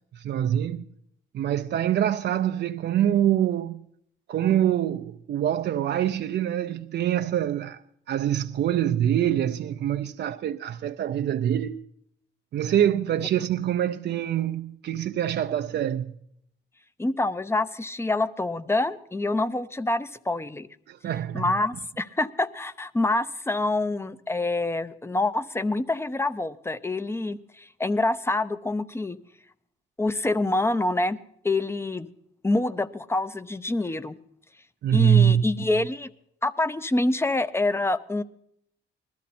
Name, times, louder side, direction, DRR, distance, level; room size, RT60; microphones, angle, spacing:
voice 1, 0.1-0.9 1.3-3.8 4.3-7.8 8.1-11.8 12.5-16.1 20.9-21.5 34.8-35.4, right 10 dB, 60° right, 0.5 m, -25 dB
voice 2, 17.0-20.7 21.3-29.2 30.0-31.2 31.4-32.1 32.4-34.2 34.9-36.1 36.4-38.2, left 2 dB, 10° left, 0.7 m, -26 dB
20.0 x 13.0 x 4.3 m
cardioid pair, 90°, 20 cm